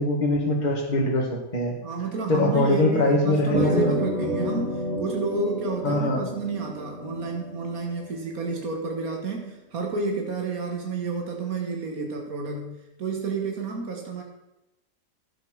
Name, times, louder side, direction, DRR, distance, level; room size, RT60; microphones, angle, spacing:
voice 1, 0.0-1.8 2.3-3.9 5.8-6.2, left 1 dB, 30° left, -1 dB, 2.0 m, -23 dB
voice 2, 1.8-14.2, right 4 dB, 85° right, 1 dB, 2.1 m, -30 dB
sound 1, 3.5-8.2, left 1 dB, 50° right, 2.6 m, -30 dB
11.5 x 7.5 x 6.3 m, 0.94 s
omnidirectional pair, 1.5 m